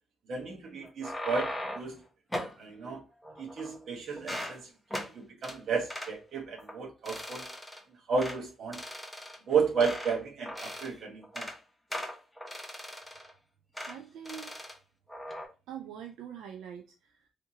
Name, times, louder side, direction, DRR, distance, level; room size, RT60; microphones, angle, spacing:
voice 1, 0.3-2.0 2.6-3.0 3.4-7.5 8.1-8.8 9.5-11.5, right 5 dB, 60° right, 1.2 m, -33 dB
sound 1, 0.8-1.9 2.3-2.6 3.2-3.9 4.2-4.6 4.9-5.1 5.4-5.6 5.9-6.1 6.6-6.8 7.1-7.8 8.2-8.4 8.7-10.2 10.5-10.9 11.2-11.6 11.9-13.3 13.8-14.0 14.3-14.8 15.1-15.5, equal, 5° left, 0.8 m, -39 dB
voice 2, 13.8-14.5 15.7-17.3, right 8 dB, 85° right, 0.4 m, -44 dB
3.4 x 2.8 x 2.7 m
cardioid pair, 90°, 0 cm